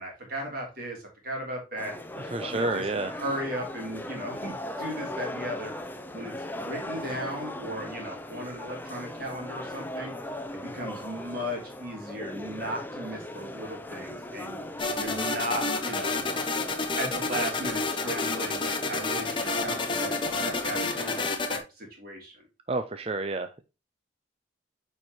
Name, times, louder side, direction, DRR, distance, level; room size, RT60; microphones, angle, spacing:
voice 1, 0.0-1.9 2.4-5.7 6.1-10.1 10.5-14.6 15.0-16.2 17.0-22.4, equal, 50° right, 0 dB, 2.9 m, -36 dB
sound 1, 1.8-21.3, left 1 dB, 10° left, 0.7 m, -39 dB
voice 2, 2.3-3.1 22.7-23.6, right 2 dB, 30° right, 8 dB, 0.5 m, -29 dB
sound 2, 14.8-21.6, left 3 dB, 25° left, 1.0 m, -29 dB
9.3 x 4.5 x 3.0 m, 0.28 s
head